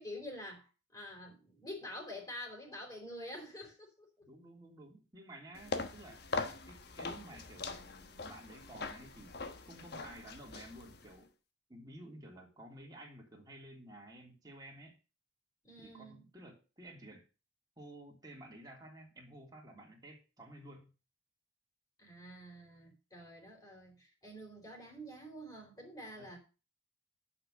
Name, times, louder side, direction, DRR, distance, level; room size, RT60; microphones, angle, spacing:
voice 1, 0.0-4.1 15.6-16.3 22.0-26.4, left 1 dB, 20° left, 4.0 m, -47 dB
voice 2, 4.2-6.2 6.7-9.3 9.7-11.3 11.7-15.0 15.8-17.2 17.8-20.9 26.2-26.3, right 1 dB, 20° right, 3.2 m, -53 dB
sound 1, 5.5-11.2, left 3 dB, 55° left, 1.2 m, -42 dB
10.5 x 6.1 x 6.6 m
head